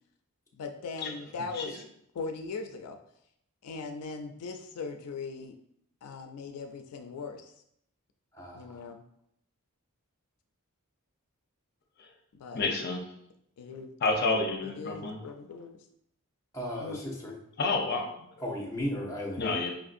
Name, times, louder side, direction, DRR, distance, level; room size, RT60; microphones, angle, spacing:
voice 1, 0.5-1.8 2.1-3.0 3.6-5.6 6.0-7.5 8.5-9.0 12.3-12.6 13.6-13.9 14.6-15.9 16.8-17.0, left 4 dB, 80° left, 6 dB, 0.4 m, -39 dB
voice 2, 8.3-8.9 16.5-17.4 18.4-19.6, left 1 dB, 15° left, -1 dB, 0.8 m, -36 dB
voice 3, 12.5-13.0 14.0-15.2 17.6-18.1 19.4-19.7, left 3 dB, 45° left, 2 dB, 0.6 m, -29 dB
5.2 x 2.6 x 2.5 m, 0.73 s
head